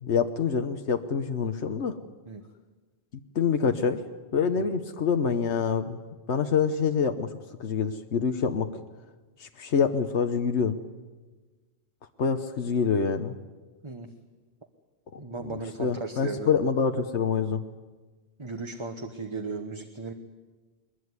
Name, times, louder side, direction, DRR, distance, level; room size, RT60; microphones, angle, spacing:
voice 1, 0.0-2.0 3.3-4.0 4.3-6.0 6.3-7.3 7.6-8.7 9.4-10.8 12.2-13.3 15.1-17.6, left 6 dB, 85° left, 7 dB, 1.3 m, -26 dB
voice 2, 15.2-16.5 18.4-20.1, right 3 dB, 25° right, 5 dB, 1.3 m, -36 dB
22.0 x 21.0 x 9.7 m, 1.3 s
omnidirectional pair, 1.1 m